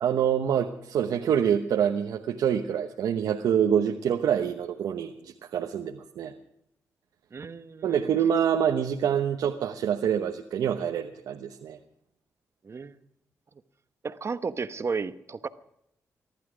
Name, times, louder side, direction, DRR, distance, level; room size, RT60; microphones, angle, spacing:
voice 1, 0.0-6.3 7.8-11.8, right 8 dB, 85° right, 4 dB, 1.0 m, -26 dB
voice 2, 7.3-8.0 12.6-13.0 14.0-15.5, right 5 dB, 45° right, 12 dB, 1.0 m, -33 dB
22.5 x 12.0 x 5.0 m, 0.78 s
cardioid pair, 65°, 6 cm